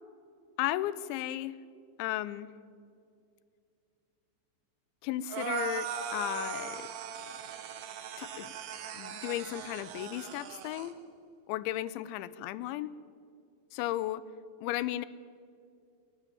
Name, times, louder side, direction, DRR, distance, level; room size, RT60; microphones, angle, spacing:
voice 1, 0.6-1.6 2.0-2.5 5.0-6.9 8.2-8.5 8.9-11.0 11.5-12.9 13.7-14.2 14.6-15.1, left 14 dB, 85° left, 17 dB, 3.1 m, -35 dB
sound 1, 5.3-10.9, right 7 dB, 65° right, 2.8 m, -39 dB
29.0 x 11.5 x 9.2 m, 2.3 s
omnidirectional pair, 5.3 m